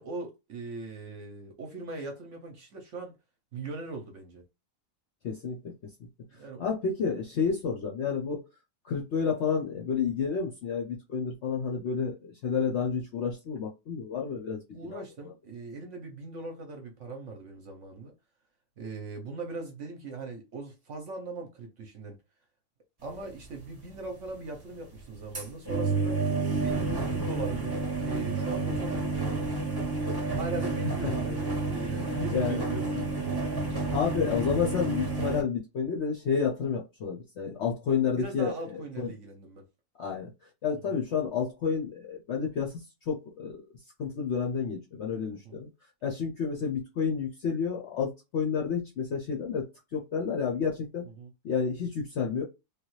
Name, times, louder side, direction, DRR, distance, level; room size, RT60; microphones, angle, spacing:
voice 1, 0.0-3.1 3.5-4.4 6.3-6.6 14.7-18.1 18.8-22.2 23.0-26.2 26.6-29.7 30.3-32.9 38.2-39.7 40.7-41.0 45.3-45.6 51.0-51.3, right 3 dB, 60° right, 0.9 m, -40 dB
voice 2, 5.2-5.6 6.6-8.4 8.8-15.3 31.0-31.1 31.9-33.1 33.6-39.1 40.0-40.3 40.6-43.6 44.0-45.7 46.0-49.7 49.9-51.0 51.4-52.4, left 6 dB, 65° left, 0.7 m, -30 dB
sound 1, 23.1-23.2 23.6-23.7 24.3-24.4 24.9-35.4, right 3 dB, 25° right, 0.6 m, -30 dB
3.3 x 2.3 x 3.0 m
omnidirectional pair, 1.7 m